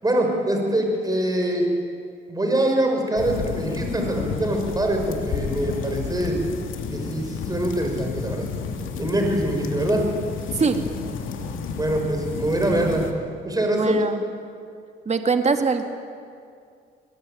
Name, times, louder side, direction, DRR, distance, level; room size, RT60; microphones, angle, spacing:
voice 1, 0.0-1.7 2.3-6.4 6.9-8.5 9.0-10.1 11.8-13.1 13.4-14.0, right 1 dB, 20° right, 2 dB, 5.8 m, -24 dB
sound 1, 3.2-13.1, left 5 dB, 80° left, 2.7 m, -31 dB
voice 2, 13.7-14.2 15.1-15.8, right 4 dB, 35° right, 6 dB, 2.1 m, -22 dB
21.5 x 21.0 x 9.2 m, 2.3 s
cardioid pair, 90°, 20 cm